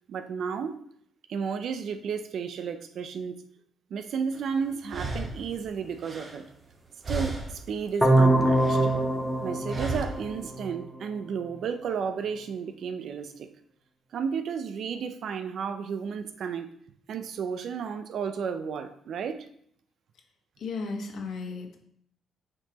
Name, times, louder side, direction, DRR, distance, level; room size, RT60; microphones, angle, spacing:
voice 1, 0.1-0.8 1.3-3.4 3.9-6.4 7.1-8.9 9.4-13.5 14.1-16.7 17.1-19.5, right 6 dB, 65° right, 10 dB, 0.5 m, -33 dB
sound 1, 4.3-4.4 4.9-6.8 7.0-7.8 8.1-9.0 9.7-10.4, right 3 dB, 35° right, 1.2 m, -35 dB
sound 2, 8.0-11.0, right 1 dB, 5° left, 0.9 m, -24 dB
voice 2, 20.6-21.8, left 4 dB, 70° left, 2 dB, 1.3 m, -34 dB
8.6 x 4.5 x 3.0 m, 0.68 s
cardioid pair, 90°, 0 cm